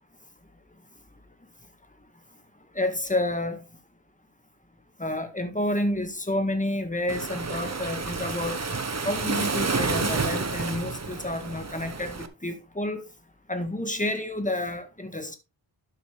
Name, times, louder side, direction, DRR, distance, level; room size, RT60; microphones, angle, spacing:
voice 1, 2.7-3.6 5.0-8.6 9.0-13.0 13.5-15.3, left 1 dB, 15° left, 1.7 m, -29 dB
Waves surf, 7.1-12.3, right 4 dB, 30° right, 1.0 m, -30 dB
11.5 x 7.0 x 3.3 m
wide cardioid pair, 95°, 49 cm